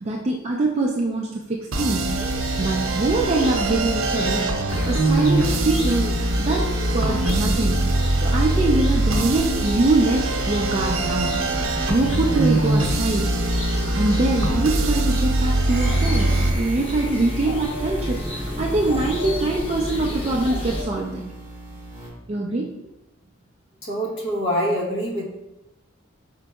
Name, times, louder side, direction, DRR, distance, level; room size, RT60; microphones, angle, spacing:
voice 1, 0.0-2.1 2.6-4.5 4.8-7.9 8.2-11.4 11.9-13.3 13.9-21.2 22.3-22.7, right 2 dB, 30° right, -1 dB, 0.3 m, -23 dB
sound 1, 1.7-16.5, right 2 dB, 75° right, 0.6 m, -23 dB
sound 2, 2.0-20.8, equal, 30° left, 0.8 m, -30 dB
sound 3, 15.7-22.1, equal, 10° right, 1.2 m, -38 dB
voice 2, 23.8-25.2, equal, 55° left, -3 dB, 1.0 m, -25 dB
5.0 x 4.5 x 2.3 m, 0.97 s
head